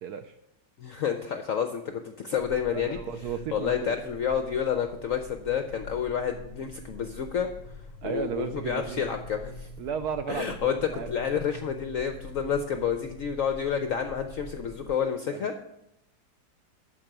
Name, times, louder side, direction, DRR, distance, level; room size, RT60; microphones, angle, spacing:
voice 1, 0.0-0.4 2.7-4.0 8.0-9.0 9.8-11.1 15.3-15.5, right 7 dB, 70° right, 9 dB, 0.9 m, -34 dB
voice 2, 0.8-3.0 3.5-7.5 8.0-9.7 10.3-15.5, left 7 dB, 70° left, 7 dB, 0.8 m, -29 dB
sound 1, 2.4-14.9, left 2 dB, 55° right, 5.0 m, -45 dB
11.5 x 4.7 x 7.8 m, 0.84 s
omnidirectional pair, 2.1 m